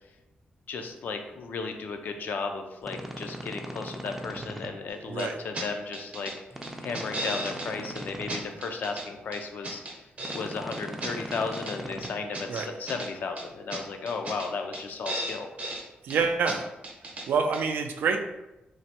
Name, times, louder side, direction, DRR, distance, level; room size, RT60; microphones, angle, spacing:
voice 1, 0.7-10.0 10.3-15.5, left 4 dB, 65° left, 5 dB, 0.4 m, -35 dB
sound 1, 2.8-4.7 6.5-8.4 10.2-12.1, right 1 dB, 10° right, 0.3 m, -39 dB
sound 2, 5.2-5.3 5.5-5.7 5.9-6.3 6.6-7.7 8.0-8.1 8.3-9.1 9.3-10.4 10.7-11.7 12.0-13.1 13.4-13.5 13.7-13.8 14.1-14.5 14.7-14.8 15.1-15.8 16.1-16.2 16.5-16.6 16.8-17.3 17.5-17.6, right 1 dB, 45° right, 0.7 m, -35 dB
voice 2, 16.0-16.7 17.3-18.2, right 5 dB, 80° right, 4 dB, 0.3 m, -26 dB
3.1 x 2.1 x 2.8 m, 0.96 s
cardioid pair, 105°, 3 cm